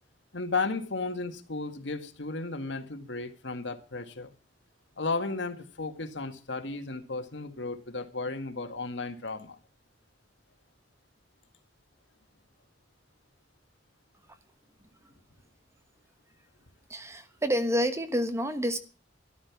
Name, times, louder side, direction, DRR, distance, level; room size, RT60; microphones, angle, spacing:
voice 1, 0.3-4.3 5.0-9.6, left 3 dB, 75° left, 1.9 m, -34 dB
voice 2, 16.9-18.8, equal, 15° right, 1.2 m, -28 dB
13.0 x 12.5 x 6.0 m
head